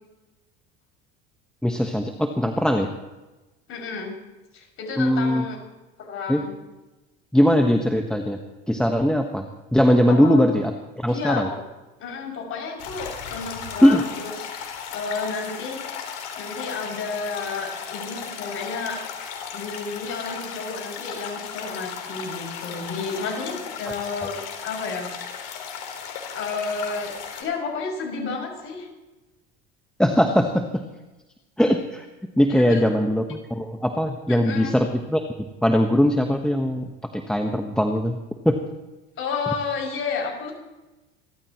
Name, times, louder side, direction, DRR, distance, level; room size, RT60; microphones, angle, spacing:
voice 1, 1.6-2.9 5.0-5.4 6.3-6.4 7.3-8.4 8.7-9.5 9.7-10.7 11.0-11.5 13.8-14.0 30.0-30.8 31.6-32.0 32.4-38.2 38.4-38.6, equal, 5° left, 4 dB, 1.3 m, -20 dB
voice 2, 3.7-4.2 4.5-5.6 6.0-6.6 10.1-10.4 11.1-11.6 12.0-15.8 16.3-19.0 19.5-25.1 26.3-28.9 32.5-32.9 34.3-34.7 39.2-40.5, left 4 dB, 45° left, 0 dB, 6.7 m, -31 dB
sound 1, 12.8-27.4, left 7 dB, 75° left, 3.8 m, -36 dB
27.5 x 13.5 x 3.1 m, 1.1 s
supercardioid pair, 95°, 29 cm